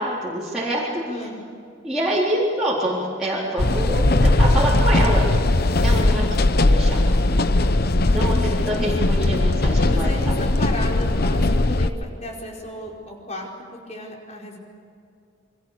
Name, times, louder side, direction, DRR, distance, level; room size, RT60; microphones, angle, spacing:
voice 1, 0.0-1.0 1.8-5.3 5.8-6.2 6.6-7.4 8.1-10.1, right 1 dB, 5° right, -9 dB, 3.9 m, -26 dB
voice 2, 1.0-1.4 6.0-6.4 7.9-8.9 9.8-14.6, left 1 dB, 35° left, -1 dB, 5.1 m, -34 dB
sound 1, 3.6-11.9, left 2 dB, 50° left, 0.9 m, -19 dB
29.0 x 24.5 x 6.9 m, 2.4 s
head